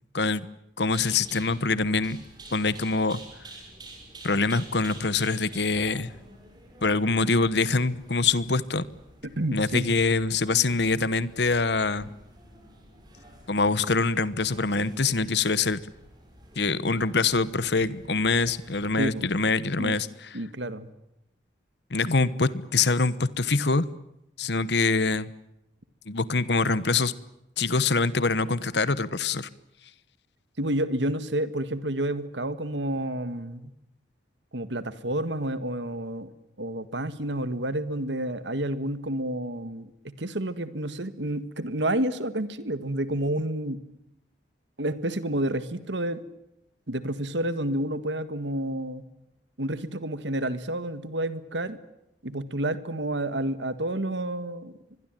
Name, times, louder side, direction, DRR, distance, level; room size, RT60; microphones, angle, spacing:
voice 1, 0.1-0.5 0.8-2.2 2.5-3.2 4.2-6.1 6.8-8.8 9.5-12.1 13.5-15.8 16.6-20.3 21.9-23.8 24.4-25.3 26.1-27.1 27.6-29.5, left 4 dB, 65° left, 17 dB, 1.1 m, -24 dB
sound 1, 0.8-19.4, right 2 dB, 20° right, 6.4 m, -50 dB
voice 2, 9.2-9.9 19.0-19.3 19.8-20.0 20.3-20.9 30.6-33.7 34.5-36.3 36.6-43.8 44.8-46.2 46.9-49.0 49.6-51.8 52.2-54.8, right 1 dB, 75° right, 13 dB, 1.7 m, -30 dB
24.5 x 21.5 x 9.1 m, 0.84 s
head